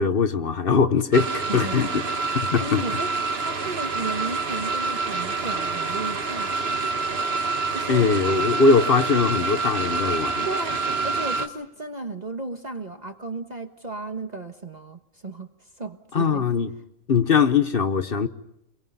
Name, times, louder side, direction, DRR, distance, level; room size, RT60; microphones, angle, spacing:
voice 1, 0.0-2.0 2.3-2.8 7.9-10.5 16.1-16.7 17.1-18.3, left 5 dB, 50° left, 1.1 m, -21 dB
sound 1, 1.1-11.5, right 4 dB, 50° right, 1.6 m, -27 dB
voice 2, 1.5-2.2 2.6-6.9 7.7-8.1 10.4-16.4, right 2 dB, 35° right, 1.4 m, -35 dB
29.5 x 23.0 x 5.5 m
omnidirectional pair, 1.3 m